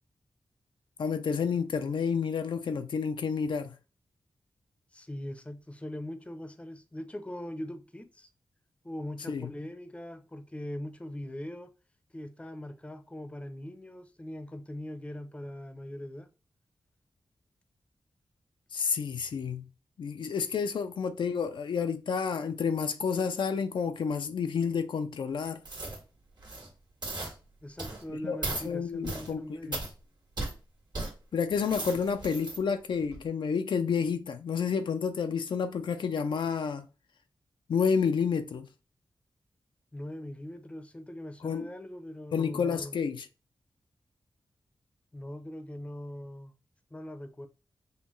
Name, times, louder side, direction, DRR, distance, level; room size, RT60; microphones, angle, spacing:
voice 1, 1.0-3.7 9.3-9.5 18.7-19.7 20.0-25.6 28.1-28.4 28.6-29.8 31.3-36.9 37.7-38.7 41.4-41.7 42.3-43.3, left 6 dB, 75° left, 0.4 m, -30 dB
voice 2, 4.9-8.3 8.8-11.7 12.1-16.3 27.6-29.8 39.9-43.0 45.1-46.5 46.9-47.5, left 1 dB, 15° left, 0.6 m, -41 dB
sound 1, 25.6-26.0 26.4-26.7 27.0-27.3 27.8-28.0 28.4-28.7 29.0-29.3 29.7-29.9 30.4-30.5 30.9-31.1 31.5-32.6 33.0-33.2, right 2 dB, 60° right, 1.6 m, -36 dB
5.4 x 2.2 x 3.1 m
wide cardioid pair, 80°, 8 cm